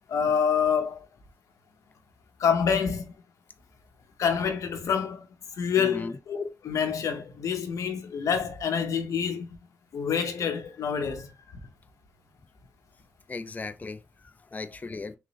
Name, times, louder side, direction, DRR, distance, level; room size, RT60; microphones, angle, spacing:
voice 1, 0.1-1.1 2.4-3.1 4.2-5.3 5.5-9.5 9.9-11.3, left 7 dB, 85° left, 0.7 m, -27 dB
voice 2, 5.8-6.2 13.3-15.2, left 3 dB, 30° left, 0.4 m, -37 dB
3.6 x 3.0 x 2.8 m
cardioid pair, 60°, 5 cm